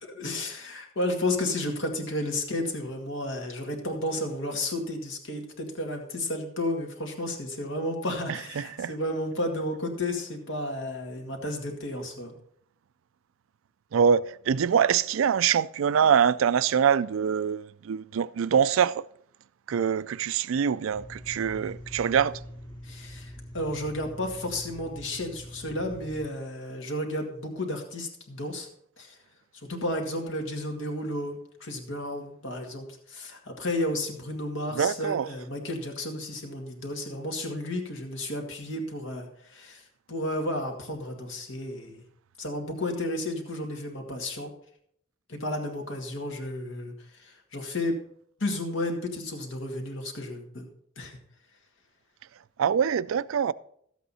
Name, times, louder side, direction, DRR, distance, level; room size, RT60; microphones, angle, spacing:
voice 1, 0.0-12.3 22.8-28.7 29.0-29.2 29.6-39.8 40.1-42.0 42.4-44.5 45.3-46.9 47.2-48.0 48.4-50.7 51.0-51.2, left 1 dB, 80° left, 2.0 m, -32 dB
voice 2, 8.3-8.9 13.9-19.0 19.7-22.3 34.7-35.3 52.6-53.5, right 7 dB, 80° right, 0.4 m, -24 dB
sound 1, 20.9-26.3, equal, 25° left, 2.2 m, -43 dB
12.5 x 8.2 x 4.2 m
head